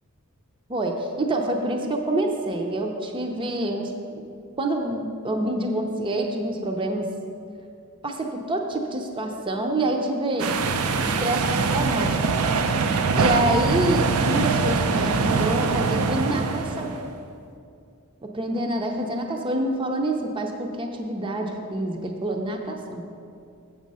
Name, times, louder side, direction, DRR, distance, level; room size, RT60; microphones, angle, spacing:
voice 1, 0.7-4.2 4.6-7.1 8.0-10.5 11.0-12.1 13.2-17.0 18.2-23.0, right 1 dB, 25° right, 2 dB, 0.5 m, -27 dB
Ocean Waves Reunion Island, 10.4-17.1, right 4 dB, 90° right, 0.5 m, -23 dB
7.3 x 6.9 x 5.4 m, 2.4 s
head